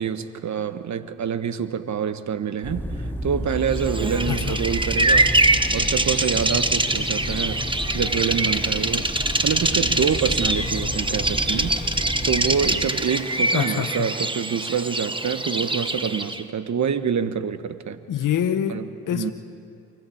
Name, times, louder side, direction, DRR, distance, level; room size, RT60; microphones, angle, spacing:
voice 1, 0.0-5.3 5.7-7.6 7.9-9.1 9.4-18.0 18.7-19.3, right 7 dB, 50° right, 11 dB, 1.4 m, -26 dB
sound 1, 2.6-12.8, equal, 5° left, 3.9 m, -31 dB
Bird vocalization bird call bird song, 3.7-16.4, right 2 dB, 15° right, 1.5 m, -24 dB
voice 2, 4.2-4.6 13.5-14.1 18.1-18.8 19.1-19.3, left 9 dB, 60° left, 8 dB, 1.3 m, -25 dB
24.5 x 16.5 x 8.7 m, 2.4 s
supercardioid pair, 50°, 35 cm